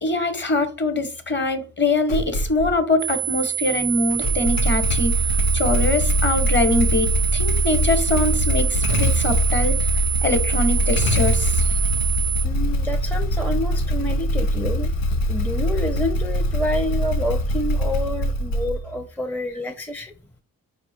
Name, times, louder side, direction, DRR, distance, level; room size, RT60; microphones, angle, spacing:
voice 1, 0.0-5.1 5.5-9.8 10.2-11.6, left 2 dB, 30° left, 1.2 m, -23 dB
Motorcycle / Engine starting, 2.1-2.8 4.1-19.0, equal, 90° left, 0.7 m, -22 dB
sound 1, 3.0-12.5, right 12 dB, 50° right, 0.4 m, -26 dB
voice 2, 12.4-14.9 15.3-20.1, left 1 dB, 5° left, 0.6 m, -28 dB
4.7 x 2.3 x 4.3 m
supercardioid pair, 50°, 36 cm